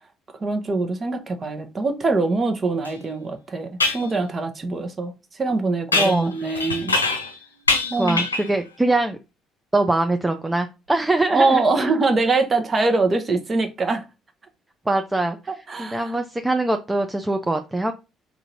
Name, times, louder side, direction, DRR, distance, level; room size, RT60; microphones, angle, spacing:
voice 1, 0.3-6.9 7.9-8.2 11.3-14.0 15.7-16.2, right 3 dB, 35° right, 0.9 m, -23 dB
sound 1, 2.8-2.9 3.8-4.1 5.9-7.4 7.7-8.6, left 3 dB, 90° left, 0.4 m, -23 dB
voice 2, 5.9-6.3 8.0-9.2 9.7-11.6 14.9-15.4 15.8-17.9, right 2 dB, 15° right, 0.5 m, -22 dB
3.8 x 2.6 x 4.5 m
figure-of-eight pair, 50°, 0 cm